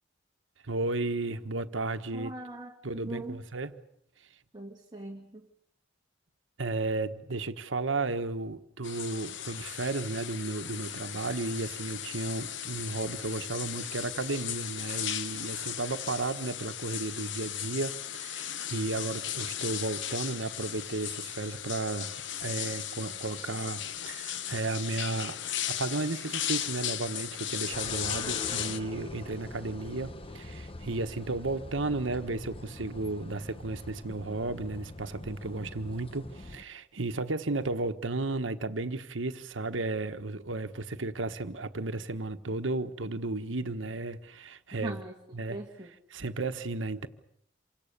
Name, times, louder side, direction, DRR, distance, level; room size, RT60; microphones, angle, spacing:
voice 1, 0.6-2.3 2.8-3.7 6.6-25.4 25.7-45.0 45.3-45.6 46.1-47.1, right 2 dB, 80° right, 1.4 m, -34 dB
voice 2, 2.1-3.4 4.5-5.5 44.8-45.9, right 2 dB, 25° right, 1.8 m, -41 dB
sound 1, 8.8-28.8, left 10 dB, 65° left, 1.0 m, -36 dB
sound 2, 27.7-36.6, left 2 dB, 30° left, 1.1 m, -43 dB
28.0 x 25.0 x 6.8 m
head